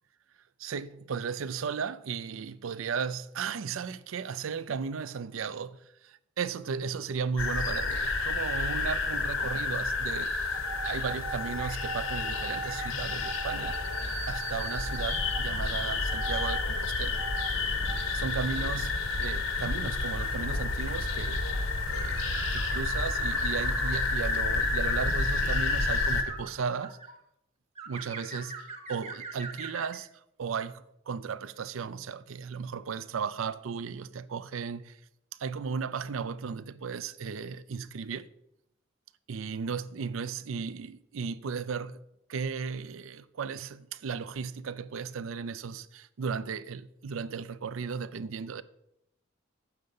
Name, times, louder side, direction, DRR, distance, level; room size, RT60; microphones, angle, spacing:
voice 1, 0.6-13.8 14.3-17.2 18.1-21.4 21.9-27.0 27.9-30.1 30.4-35.0 35.4-38.3 39.3-42.0 42.3-48.6, right 6 dB, 80° right, 0.5 m, -35 dB
sound 1, 7.4-26.2, left 3 dB, 85° left, 1.2 m, -30 dB
sound 2, 10.5-15.4 16.1-16.6 17.2-17.5 17.9-21.4 21.8-24.2 24.8-27.1 27.8-30.0, right 4 dB, 35° right, 1.3 m, -42 dB
9.3 x 6.6 x 5.4 m
head